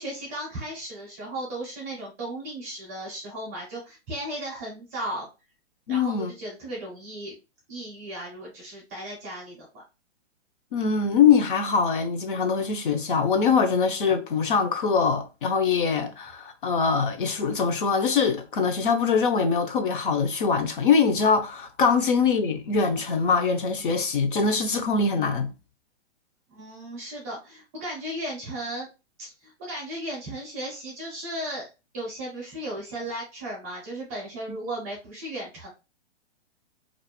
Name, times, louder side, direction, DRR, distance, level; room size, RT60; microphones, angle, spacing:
voice 1, 0.0-5.3 5.9-7.4 7.7-9.8 26.5-28.9 29.2-31.7 31.9-35.7, right 1 dB, 15° right, 0.4 m, -35 dB
voice 2, 5.9-6.3 10.7-25.5, left 5 dB, 50° left, 0.4 m, -23 dB
2.4 x 2.1 x 2.7 m
hypercardioid pair, 155°, 35 cm